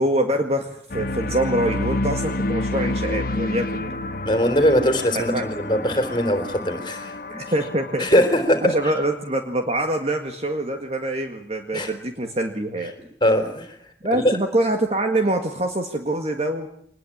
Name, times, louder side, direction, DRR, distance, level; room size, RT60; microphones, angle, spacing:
voice 1, 0.0-4.0 5.2-5.5 7.3-8.1 8.6-12.9 14.0-16.7, right 1 dB, 35° right, 5 dB, 1.9 m, -24 dB
sound 1, 0.9-9.1, left 2 dB, 50° left, 1.2 m, -29 dB
voice 2, 4.2-7.4 8.0-8.8 11.7-11.9 13.2-13.8 14.1-14.3, equal, 25° left, 8 dB, 3.8 m, -21 dB
24.5 x 20.5 x 8.8 m, 0.65 s
head